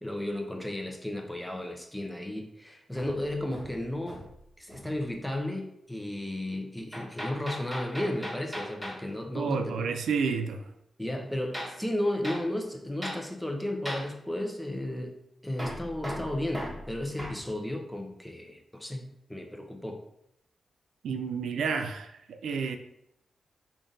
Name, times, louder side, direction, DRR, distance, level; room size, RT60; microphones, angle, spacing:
voice 1, 0.0-4.2 4.6-10.0 11.0-15.1 15.4-20.0, left 1 dB, 5° left, 3 dB, 0.7 m, -34 dB
Hammer, 2.9-4.4 4.7-5.0 6.9-9.0 11.5-11.8 12.2-12.5 13.0-13.3 13.8-14.1 15.6-17.4, equal, 10° right, 1.2 m, -38 dB
voice 2, 9.4-10.7 21.0-22.8, right 5 dB, 90° right, 7 dB, 0.3 m, -30 dB
3.6 x 2.5 x 3.8 m, 0.80 s
cardioid pair, 60°, 0 cm